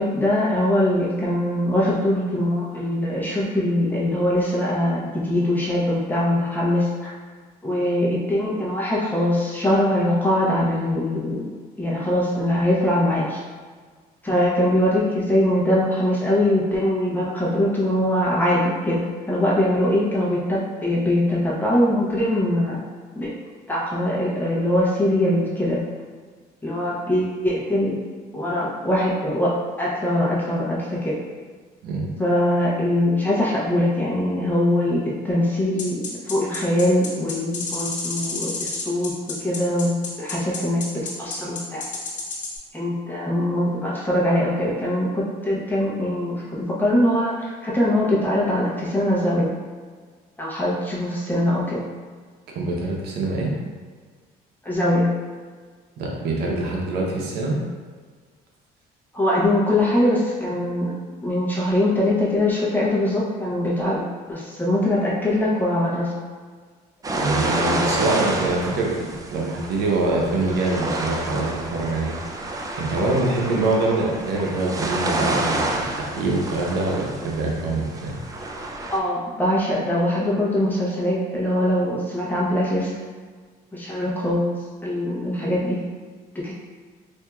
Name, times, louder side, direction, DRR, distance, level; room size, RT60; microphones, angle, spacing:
voice 1, 0.0-7.1 7.6-11.5 11.8-13.4 14.2-22.8 23.1-23.3 23.7-25.8 26.6-27.9 28.3-31.1 32.2-39.1 39.4-41.8 42.7-49.5 50.4-51.8 54.6-55.1 59.1-60.9 61.2-64.0 64.3-66.1 78.9-82.9 83.7-84.5 84.8-85.8 86.4-86.5, left 1 dB, 10° left, -6 dB, 0.9 m, -22 dB
sound 1, 35.8-42.6, left 3 dB, 45° left, 1.0 m, -30 dB
voice 2, 52.5-53.5 56.0-57.6 67.1-72.2 72.8-78.1, right 2 dB, 75° right, -2 dB, 0.8 m, -24 dB
sound 2, 67.0-79.0, right 2 dB, 20° right, 0.4 m, -29 dB
4.4 x 2.7 x 2.3 m, 1.5 s
cardioid pair, 110°, 17 cm